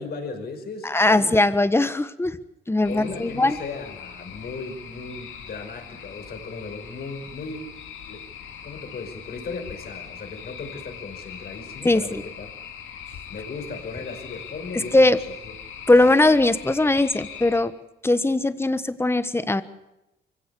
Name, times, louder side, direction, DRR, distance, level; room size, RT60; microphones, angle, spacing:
voice 1, 0.0-1.5 2.9-8.3 8.6-12.5 13.3-15.5 15.9-16.1, left 4 dB, 50° left, 5 dB, 5.5 m, -37 dB
voice 2, 0.8-2.4 2.7-3.6 11.8-12.2 14.7-15.2 15.9-17.7 18.0-19.6, left 2 dB, 10° left, 13 dB, 1.3 m, -20 dB
sound 1, 2.8-17.6, left 8 dB, 85° left, 3.0 m, -41 dB
24.0 x 16.5 x 8.4 m, 0.93 s
cardioid pair, 90°, 20 cm